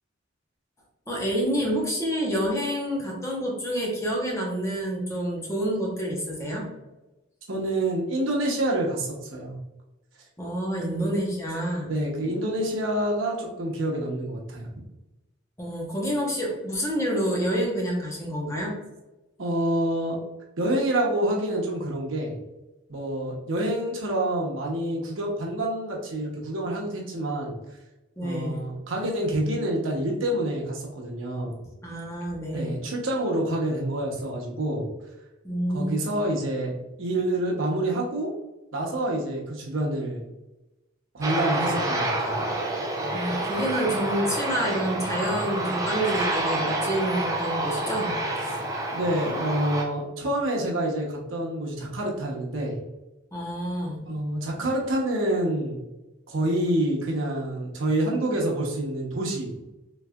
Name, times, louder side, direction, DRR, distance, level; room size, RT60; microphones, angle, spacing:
voice 1, 1.1-6.6 10.4-11.9 15.6-18.7 28.2-28.6 31.8-32.8 35.4-36.0 43.1-48.2 53.3-54.0, equal, 15° left, -2 dB, 0.8 m, -28 dB
voice 2, 7.5-9.6 10.9-11.2 11.9-14.7 19.4-20.2 20.6-22.4 22.9-27.5 28.2-31.5 32.5-34.9 35.7-38.3 38.7-40.3 41.1-42.4 48.9-52.8 54.0-55.8 56.3-59.5, right 1 dB, 85° right, -1 dB, 0.8 m, -27 dB
Aircraft, 41.2-49.8, right 1 dB, 15° right, 0.5 m, -28 dB
3.5 x 3.1 x 2.3 m, 1.0 s
head